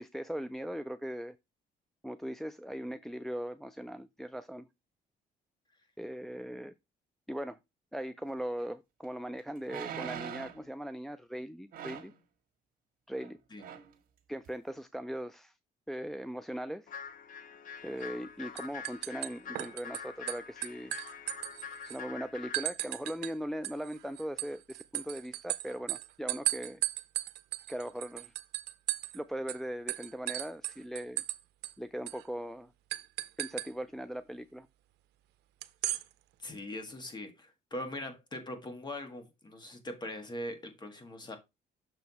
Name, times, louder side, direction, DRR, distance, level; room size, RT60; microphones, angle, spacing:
voice 1, 0.0-1.4 2.0-4.7 6.0-6.7 7.3-7.6 7.9-12.1 13.1-13.4 14.3-15.5 15.9-16.9 17.8-20.9 21.8-26.8 27.7-28.3 29.1-31.2 31.8-32.7 33.4-34.7, equal, ahead, 0.3 m, -39 dB
sound 1, 8.6-8.7 9.6-10.7 11.7-12.2 13.1-13.3 13.6-13.9 14.5-14.6, right 9 dB, 60° right, 1.5 m, -42 dB
sound 2, 16.9-22.7, left 6 dB, 50° left, 0.8 m, -45 dB
sound 3, 18.0-18.3 18.6-20.0 20.3-22.0 22.5-23.3 23.6-29.2 29.5-29.6 29.9-31.4 31.6-31.7 32.1-32.2 32.9-33.7 35.6-36.0, right 17 dB, 80° right, 0.6 m, -36 dB
voice 2, 36.4-41.4, left 1 dB, 25° left, 1.7 m, -41 dB
6.6 x 4.6 x 4.1 m
cardioid pair, 110°, 17 cm